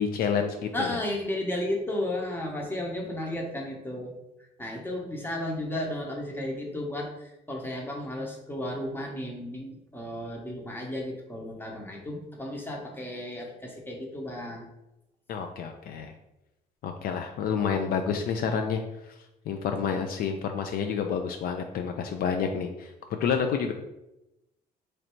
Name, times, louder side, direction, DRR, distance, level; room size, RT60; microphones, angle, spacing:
voice 1, 0.0-1.0 15.3-16.1 16.8-18.8 19.5-22.9 23.2-23.7, left 6 dB, 60° left, 5 dB, 0.4 m, -29 dB
voice 2, 0.7-4.1 4.6-14.7, left 1 dB, 10° left, 0 dB, 0.8 m, -33 dB
3.2 x 2.6 x 4.4 m, 0.93 s
cardioid pair, 110°, 17 cm